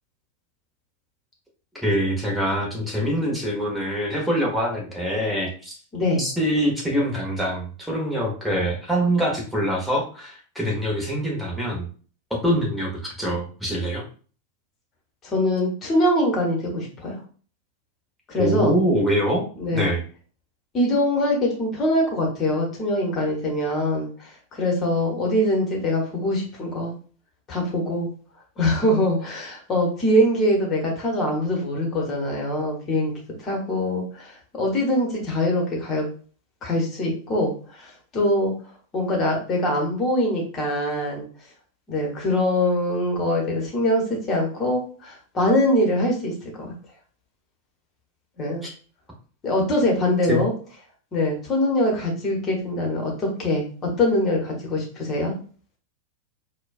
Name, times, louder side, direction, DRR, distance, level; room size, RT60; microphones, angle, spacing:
voice 1, 1.8-5.7 6.2-11.9 12.4-14.0 18.4-19.4 19.7-20.0 48.6-48.7 50.3-50.4, equal, ahead, -2 dB, 1.1 m, -24 dB
voice 2, 5.9-6.2 15.2-17.2 18.3-18.8 19.6-19.9 20.7-26.9 27.5-28.1 28.6-33.1 33.4-36.1 36.6-38.5 38.9-41.2 41.9-46.7 48.4-48.6 49.4-50.5 51.1-55.3, left 1 dB, 25° left, 0 dB, 1.2 m, -23 dB
4.3 x 2.3 x 2.5 m, 0.41 s
figure-of-eight pair, 90°, 0 cm